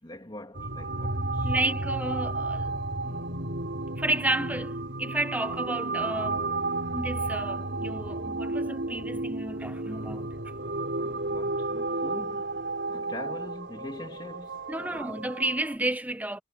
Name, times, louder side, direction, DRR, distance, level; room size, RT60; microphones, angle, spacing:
voice 1, 0.0-1.6 11.0-12.4 12.9-15.3, left 1 dB, 25° left, 3.0 m, -43 dB
sound 1, 0.5-15.8, right 2 dB, 70° right, 4.8 m, -32 dB
voice 2, 1.4-2.8 3.0-3.1 4.0-6.5 6.9-10.3 14.7-16.4, right 1 dB, 10° right, 1.1 m, -31 dB
head